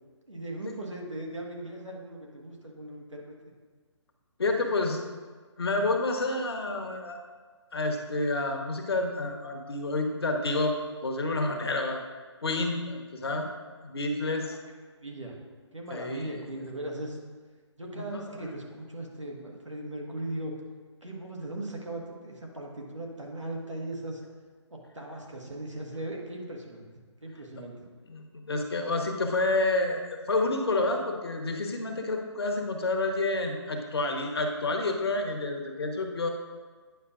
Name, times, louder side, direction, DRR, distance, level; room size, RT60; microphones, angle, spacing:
voice 1, 0.3-3.4 13.2-13.5 15.0-15.3 15.7-17.2 17.8-20.5 21.0-24.2 24.7-26.9 27.2-27.7, right 1 dB, 85° right, -1 dB, 1.4 m, -38 dB
voice 2, 4.4-5.0 5.6-7.2 7.7-10.8 11.0-12.0 12.4-13.5 13.8-14.6 15.9-16.3 18.0-18.4 28.1-36.3, left 2 dB, 55° left, 3 dB, 1.0 m, -29 dB
9.2 x 5.7 x 2.4 m, 1.5 s
figure-of-eight pair, 140°, 15 cm